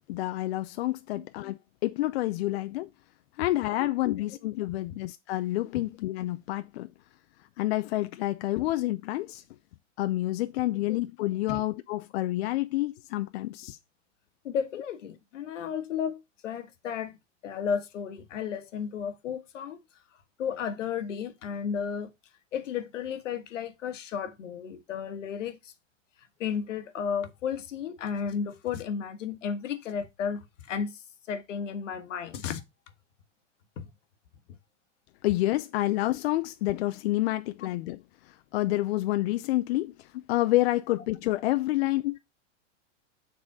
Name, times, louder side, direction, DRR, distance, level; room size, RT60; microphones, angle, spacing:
voice 1, 0.0-2.9 3.4-6.9 7.6-9.4 10.0-13.8 35.2-38.0 38.5-42.2, left 17 dB, 55° left, 0.6 m, -28 dB
voice 2, 3.8-4.2 5.7-5.8 11.5-11.6 14.4-17.2 17.4-19.8 20.4-22.1 22.5-25.7 26.4-30.9 31.3-32.6 33.8-33.9 37.6-37.7, left 7 dB, 80° left, 1.4 m, -33 dB
7.2 x 4.2 x 4.8 m
hypercardioid pair, 135°, 37 cm